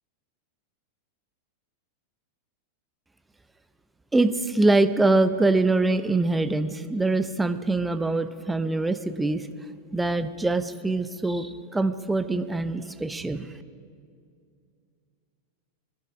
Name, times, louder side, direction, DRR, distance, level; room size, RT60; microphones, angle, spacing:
voice 1, 4.1-9.5 9.9-13.5, right 2 dB, 10° right, 11 dB, 0.7 m, -24 dB
22.5 x 10.5 x 5.1 m, 2.3 s
figure-of-eight pair, 90°, 0 cm